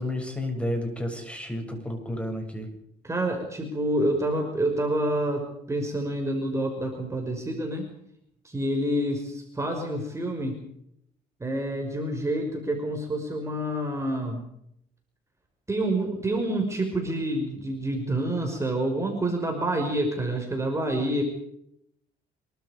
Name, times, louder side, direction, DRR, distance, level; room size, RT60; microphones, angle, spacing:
voice 1, 0.0-2.7, left 1 dB, 5° left, 3 dB, 7.8 m, -31 dB
voice 2, 3.0-7.9 8.4-10.6 11.4-14.4 15.7-21.2, right 1 dB, 15° right, 2 dB, 5.7 m, -28 dB
26.5 x 24.0 x 5.2 m, 0.74 s
cardioid pair, 110°, 17 cm